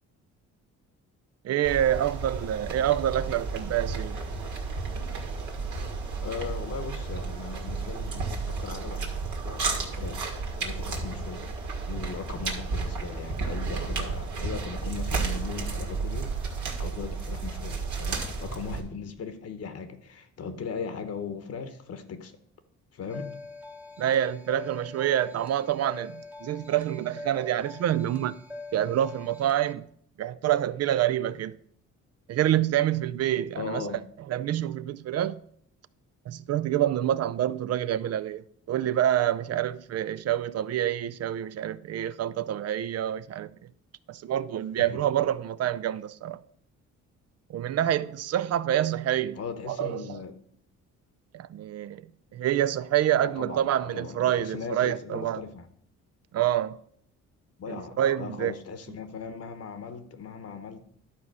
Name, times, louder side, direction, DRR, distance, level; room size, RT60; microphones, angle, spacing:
voice 1, 1.4-4.2 24.0-28.4 28.7-29.9 30.2-31.6 32.3-33.9 34.3-35.4 36.3-43.5 44.1-46.4 47.5-49.4 49.7-50.2 51.3-52.0 52.3-55.4 56.3-56.8 57.7-58.5, right 11 dB, 55° right, 0.4 m, -27 dB
sound 1, 1.6-18.8, right 4 dB, 75° right, 1.9 m, -32 dB
voice 2, 6.2-9.2 9.4-10.3 10.6-11.5 11.9-16.3 16.8-22.4 22.9-23.4 33.6-34.0 44.8-45.0 49.4-50.4 53.2-55.7 57.6-60.8, left 6 dB, 55° left, 1.0 m, -38 dB
sound 2, 23.1-29.7, left 3 dB, 5° right, 1.1 m, -44 dB
11.5 x 4.2 x 6.2 m
cardioid pair, 90°, 30 cm